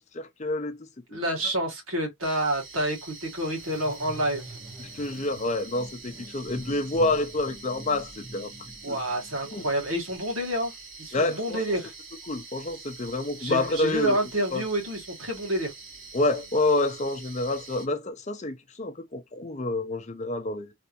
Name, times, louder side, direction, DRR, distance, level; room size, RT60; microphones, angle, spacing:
voice 1, 0.1-0.8 1.1-1.2 4.8-8.5 8.9-9.0 9.5-9.6 11.1-11.6 12.3-14.2 14.5-14.6 16.1-20.7, left 2 dB, 35° left, 0.5 m, -28 dB
voice 2, 1.1-4.5 8.8-10.7 11.0-11.9 13.4-15.7, right 1 dB, 80° right, 1.7 m, -28 dB
sound 1, 2.2-17.9, right 3 dB, 60° right, 1.9 m, -45 dB
sound 2, 3.4-10.2, right 1 dB, 35° right, 0.9 m, -45 dB
3.3 x 2.9 x 2.6 m
head